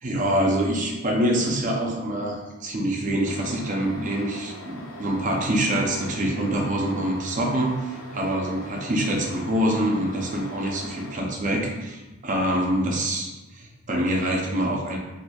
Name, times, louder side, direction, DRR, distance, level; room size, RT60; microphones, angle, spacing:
voice 1, 0.0-15.0, right 1 dB, 40° right, 0 dB, 0.5 m, -25 dB
sound 1, 3.2-11.2, equal, 75° left, 0.5 m, -42 dB
4.3 x 2.5 x 2.3 m, 1.1 s
head